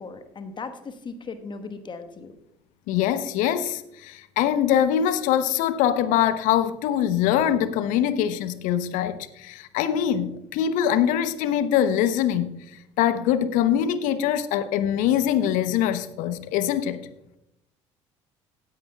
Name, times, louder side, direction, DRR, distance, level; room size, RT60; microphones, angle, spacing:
voice 1, 0.0-2.3, left 4 dB, 30° left, 1.3 m, -37 dB
voice 2, 2.9-12.5 13.0-17.1, left 10 dB, 60° left, 0.8 m, -23 dB
17.0 x 9.8 x 2.3 m
figure-of-eight pair, 60°, 15 cm